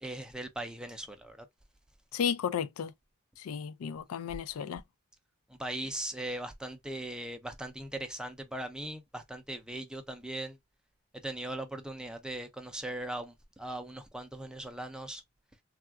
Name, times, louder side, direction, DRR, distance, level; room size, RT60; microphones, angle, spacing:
voice 1, 0.0-1.5 5.6-10.6 11.2-15.2, right 1 dB, 5° right, 0.4 m, -39 dB
voice 2, 2.1-2.9 3.4-4.8, left 7 dB, 80° left, 0.4 m, -33 dB
3.5 x 2.3 x 2.2 m
head